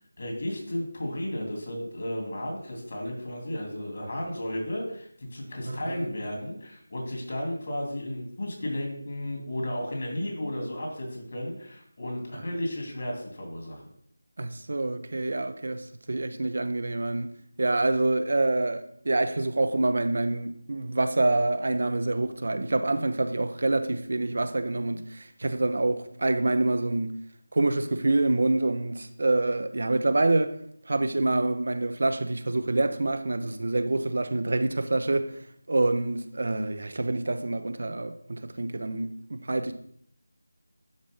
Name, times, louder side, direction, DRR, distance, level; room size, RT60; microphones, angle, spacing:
voice 1, 0.2-13.8, left 1 dB, 45° left, 3.1 m, -33 dB
voice 2, 5.6-6.0 12.3-12.5 14.4-17.3 17.6-27.1 27.5-30.6 30.9-35.4 35.7-39.7, right 2 dB, 50° right, 0.8 m, -26 dB
11.5 x 5.1 x 3.8 m
figure-of-eight pair, 165°, 0 cm